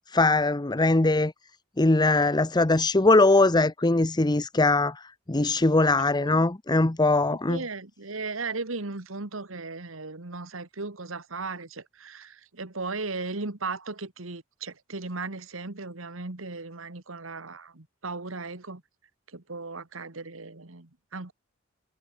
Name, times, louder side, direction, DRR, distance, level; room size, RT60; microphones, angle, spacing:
voice 1, 0.1-1.3 1.8-7.6, left 2 dB, 20° left, 0.8 m, -21 dB
voice 2, 6.0-6.3 7.5-18.8 19.3-21.3, right 3 dB, 80° right, 1.9 m, -36 dB
head